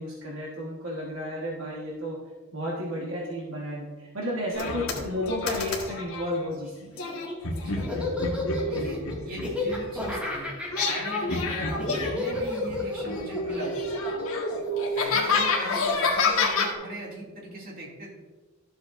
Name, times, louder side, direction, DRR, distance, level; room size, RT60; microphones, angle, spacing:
voice 1, 0.0-2.2 2.5-6.9, left 1 dB, 65° right, -3 dB, 1.4 m, -32 dB
sound 1, 4.5-6.3 7.0-10.3 10.7-12.8 13.0-16.7, left 3 dB, 75° left, 1.5 m, -28 dB
Laughter, 6.9-15.4, left 2 dB, 5° right, 1.9 m, -33 dB
voice 2, 8.7-10.5 10.8-13.9 14.9-18.1, right 1 dB, 40° right, -4 dB, 2.4 m, -39 dB
12.5 x 7.6 x 2.6 m, 1.3 s
head